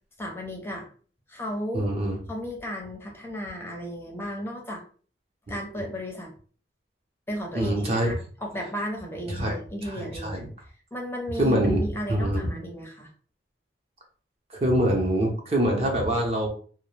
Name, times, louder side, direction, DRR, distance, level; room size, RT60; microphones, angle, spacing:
voice 1, 0.2-0.9 1.3-1.9 2.3-4.8 5.5-6.3 7.3-13.1, equal, 10° left, 0 dB, 0.5 m, -34 dB
voice 2, 1.7-2.2 5.5-5.6 7.5-8.1 9.3-10.5 11.4-11.8 12.1-12.5 14.6-16.5, right 1 dB, 35° right, 0 dB, 0.6 m, -25 dB
2.3 x 2.0 x 3.1 m, 0.41 s
head